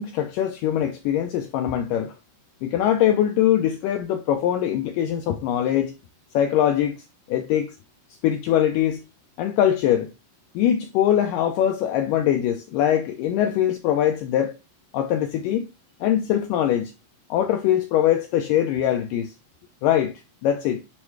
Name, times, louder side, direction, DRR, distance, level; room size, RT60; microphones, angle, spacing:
voice 1, 0.0-2.1 2.6-5.9 6.3-7.0 7.3-7.7 8.2-9.0 9.4-10.1 10.6-14.6 14.9-15.7 16.0-16.9 17.3-19.3 19.8-20.8, left 10 dB, 80° left, 1.9 m, -22 dB
8.6 x 3.0 x 4.6 m
omnidirectional pair, 4.4 m